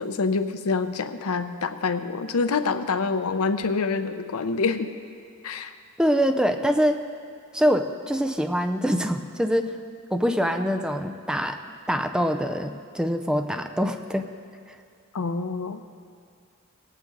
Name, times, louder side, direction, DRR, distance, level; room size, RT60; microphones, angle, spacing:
voice 1, 0.0-4.9 5.4-5.7 15.1-15.8, left 4 dB, 80° left, 9 dB, 0.7 m, -26 dB
voice 2, 6.0-7.0 7.5-9.7 10.1-11.6 11.9-14.3, equal, 5° right, 7 dB, 0.5 m, -24 dB
19.5 x 9.0 x 3.9 m, 2.2 s
head